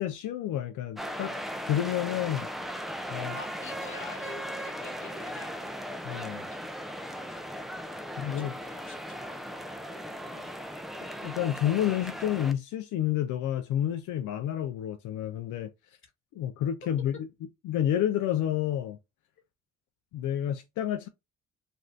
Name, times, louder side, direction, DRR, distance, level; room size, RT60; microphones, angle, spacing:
voice 1, 0.0-1.4 1.7-2.5 3.1-3.4 6.0-6.4 8.2-8.5 11.2-15.7 16.4-17.2 17.6-19.0 20.1-21.1, left 11 dB, 80° left, 0.4 m, -29 dB
sound 1, 1.0-12.5, equal, ahead, 0.4 m, -38 dB
voice 2, 3.3-5.5 7.2-7.4 8.2-9.4 10.3-10.6, left 3 dB, 40° left, 1.2 m, -47 dB
2.6 x 2.3 x 3.1 m
cardioid pair, 90°, 30 cm